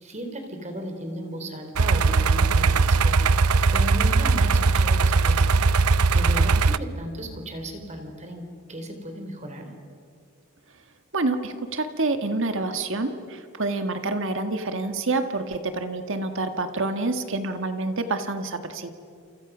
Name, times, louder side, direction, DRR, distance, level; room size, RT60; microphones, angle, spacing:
voice 1, 0.0-3.3 3.7-5.5 6.1-8.4 8.7-9.7, right 1 dB, 30° right, 5 dB, 3.8 m, -35 dB
sound 1, 1.8-6.8, right 4 dB, 90° right, 0.7 m, -19 dB
voice 2, 11.1-18.9, right 2 dB, 60° right, 7 dB, 1.7 m, -27 dB
30.0 x 28.0 x 6.2 m, 2.3 s
head